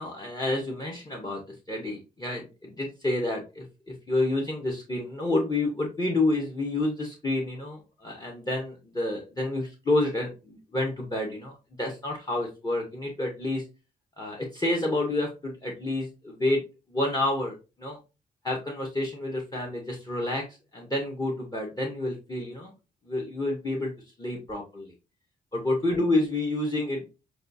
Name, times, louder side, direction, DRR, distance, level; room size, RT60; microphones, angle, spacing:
voice 1, 0.0-13.6 14.2-16.6 16.9-18.0 18.4-20.4 20.7-22.7 23.0-23.9 24.2-24.9 25.5-27.1, left 2 dB, 20° left, 0 dB, 0.9 m, -29 dB
6.5 x 2.3 x 2.6 m, 0.30 s
cardioid pair, 100°, 17 cm